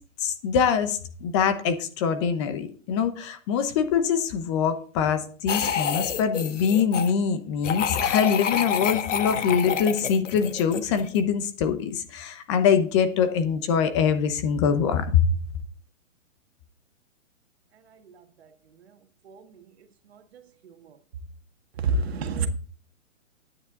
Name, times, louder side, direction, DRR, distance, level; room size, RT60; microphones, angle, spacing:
voice 1, 0.2-15.2, left 7 dB, 20° left, 0.9 m, -24 dB
sound 1, 5.5-7.1 7.6-11.2, left 7 dB, 65° left, 1.5 m, -28 dB
voice 2, 19.2-19.6 20.1-20.2 20.6-20.9 21.8-22.5, right 3 dB, 50° right, 1.7 m, -29 dB
11.0 x 9.8 x 3.8 m
hypercardioid pair, 155°, 39 cm